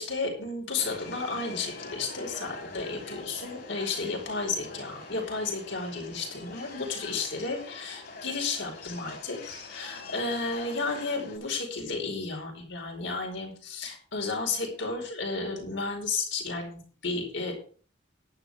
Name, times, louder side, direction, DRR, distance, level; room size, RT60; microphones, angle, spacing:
voice 1, 0.0-17.5, left 3 dB, 75° left, 2 dB, 4.9 m, -33 dB
Subway metro underground, 0.8-11.4, left 3 dB, 50° left, 4.0 m, -44 dB
11.5 x 11.0 x 5.0 m, 0.43 s
head